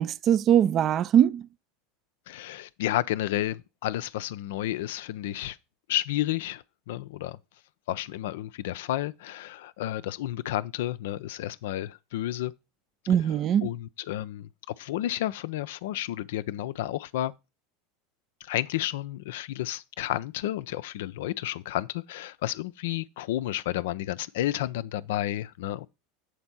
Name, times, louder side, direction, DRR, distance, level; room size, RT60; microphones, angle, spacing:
voice 1, 0.0-1.4 13.1-13.7, right 9 dB, 40° right, 0.4 m, -21 dB
voice 2, 2.3-5.6 5.9-7.4 7.9-12.5 13.1-17.3 18.4-25.9, left 14 dB, 65° left, 0.4 m, -31 dB
7.9 x 4.3 x 5.9 m
hypercardioid pair, 80°, 0 cm